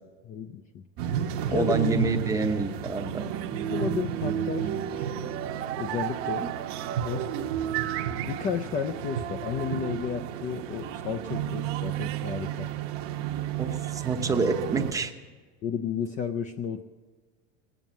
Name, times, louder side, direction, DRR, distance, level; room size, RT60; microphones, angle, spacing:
voice 1, 0.2-0.8 1.5-1.7 3.5-5.3 5.8-6.5 7.0-7.3 8.2-12.7 15.6-16.8, left 7 dB, 25° left, 6 dB, 0.4 m, -33 dB
sound 1, 1.0-14.9, right 9 dB, 45° right, 0.9 m, -31 dB
voice 2, 1.5-3.3 13.6-15.1, right 3 dB, 10° right, 5 dB, 0.8 m, -27 dB
18.0 x 9.1 x 8.3 m, 1.4 s
supercardioid pair, 155°, 31 cm